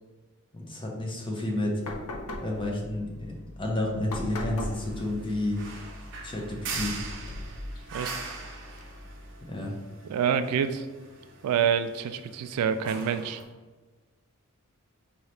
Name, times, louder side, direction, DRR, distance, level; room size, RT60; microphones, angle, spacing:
voice 1, 0.5-1.8 2.4-5.6 6.2-6.9 9.5-9.7, left 1 dB, 20° left, 0 dB, 0.7 m, -31 dB
sound 1, 1.8-9.3, left 1 dB, 75° left, 0.6 m, -40 dB
sound 2, 4.6-13.4, right 4 dB, 55° right, 0.6 m, -42 dB
voice 2, 10.1-10.9 11.4-13.4, right 7 dB, 90° right, 13 dB, 0.3 m, -27 dB
4.6 x 2.8 x 3.2 m, 1.2 s
head